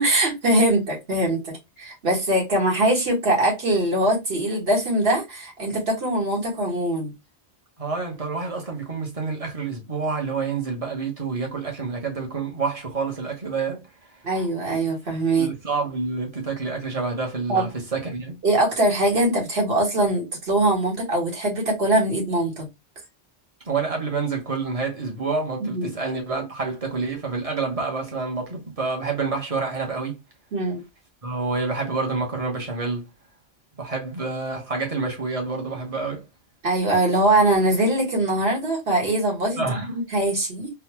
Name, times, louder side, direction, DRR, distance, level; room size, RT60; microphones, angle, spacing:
voice 1, 0.0-7.1 14.2-15.5 17.5-17.7 18.4-22.7 25.7-25.9 30.5-30.8 36.6-40.7, right 1 dB, 65° right, 1.7 m, -22 dB
voice 2, 7.8-14.1 15.3-18.3 23.6-30.2 31.2-33.1 33.8-36.3 39.6-39.9, right 4 dB, 35° right, 1.1 m, -28 dB
3.9 x 2.3 x 2.9 m
omnidirectional pair, 1.1 m